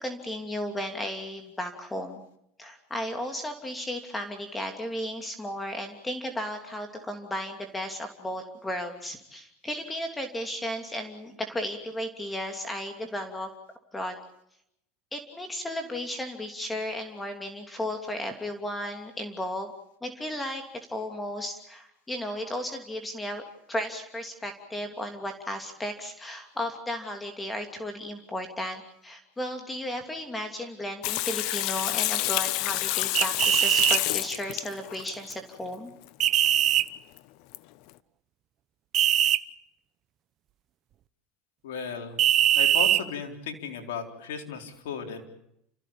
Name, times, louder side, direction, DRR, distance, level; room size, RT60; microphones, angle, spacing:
voice 1, 0.0-2.2 2.6-13.5 13.9-14.2 15.1-19.7 20.0-23.4 23.7-35.9, left 1 dB, 15° left, 6 dB, 2.9 m, -34 dB
Water tap faucet / Sink (filling or washing), 31.0-35.3 36.8-36.9 37.2-37.3 37.5-37.6, left 18 dB, 65° left, 0.9 m, -28 dB
sound 1, 33.2-34.0 36.2-36.9 38.9-39.4 42.2-43.0, right 12 dB, 45° right, 1.0 m, -21 dB
voice 2, 41.6-42.2 42.5-45.2, left 6 dB, 85° left, 3 dB, 4.1 m, -35 dB
30.0 x 15.5 x 8.6 m, 0.77 s
supercardioid pair, 105°, 0 cm